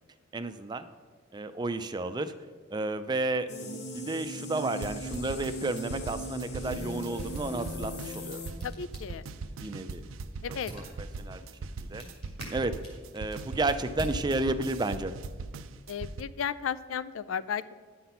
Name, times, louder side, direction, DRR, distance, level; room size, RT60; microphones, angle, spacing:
voice 1, 0.3-0.9 1.3-2.3 2.7-8.4 9.6-10.0 10.5-11.4 11.8-12.1 12.5-12.7 13.1-15.1, right 2 dB, 20° right, 9 dB, 0.4 m, -32 dB
sound 1, 3.5-8.5, equal, 55° left, 1.0 m, -39 dB
sound 2, 4.8-16.2, right 3 dB, 90° right, 0.5 m, -40 dB
sound 3, 7.8-14.9, equal, 30° left, 2.5 m, -47 dB
voice 2, 8.6-9.2 10.4-10.7 15.9-17.7, left 7 dB, 85° left, 16 dB, 0.4 m, -34 dB
10.0 x 5.9 x 5.6 m, 1.5 s
head